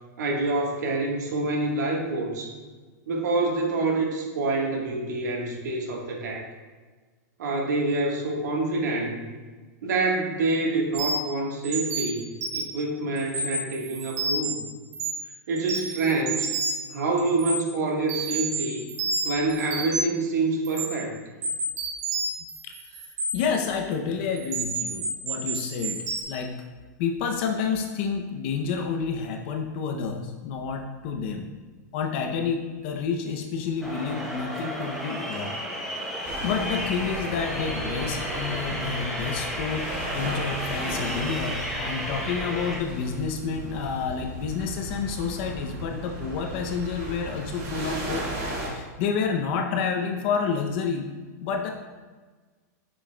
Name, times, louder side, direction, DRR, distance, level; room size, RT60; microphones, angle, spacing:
voice 1, 0.2-2.5 3.1-6.5 7.4-9.2 9.8-12.2 12.5-14.6 15.5-16.5 16.9-18.9 19.2-21.2, right 2 dB, 80° right, 0 dB, 1.4 m, -26 dB
sound 1, 10.9-11.3 11.6-12.8 13.2-14.5 14.9-15.3 15.6-16.9 17.2-17.6 18.1-20.2 20.6-20.9 21.4-23.6 24.4-26.2, right 3 dB, 60° right, 1.7 m, -30 dB
voice 2, 22.6-26.6 27.0-31.5 31.9-35.5 36.4-39.9 40.1-48.3 48.6-51.1 51.4-51.7, left 6 dB, 40° left, 4 dB, 0.5 m, -29 dB
sound 2, 33.8-42.8, equal, 5° left, 0.8 m, -32 dB
sound 3, 36.2-48.7, right 1 dB, 35° right, 1.7 m, -36 dB
8.2 x 6.3 x 2.2 m, 1.4 s
supercardioid pair, 160°, 9 cm